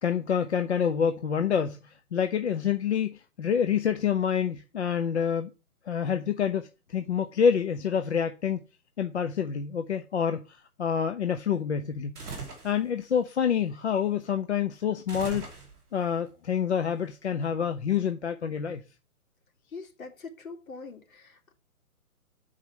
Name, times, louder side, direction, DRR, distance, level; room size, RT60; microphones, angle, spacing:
voice 1, 0.0-5.5 5.9-8.6 9.0-12.2 12.6-15.5 15.9-18.8, left 7 dB, 50° left, 0.7 m, -27 dB
sound 1, 12.1-12.8 15.1-16.0, right 4 dB, ahead, 0.7 m, -39 dB
voice 2, 19.7-21.5, left 4 dB, 65° left, 2.6 m, -43 dB
7.0 x 4.8 x 5.8 m
hypercardioid pair, 170°, 44 cm